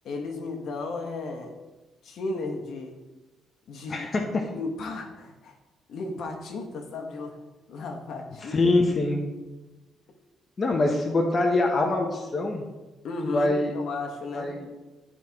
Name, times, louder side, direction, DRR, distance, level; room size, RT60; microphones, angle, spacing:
voice 1, 0.0-1.5 2.0-3.0 3.7-5.5 5.9-7.4 7.7-8.6 13.0-14.5, left 3 dB, 55° left, 3 dB, 1.0 m, -34 dB
voice 2, 3.9-4.5 8.4-9.2 10.6-12.7 13.3-13.7 14.3-14.6, left 2 dB, 25° left, 1 dB, 0.6 m, -24 dB
11.0 x 4.6 x 2.9 m, 1.2 s
cardioid pair, 165°, 0 cm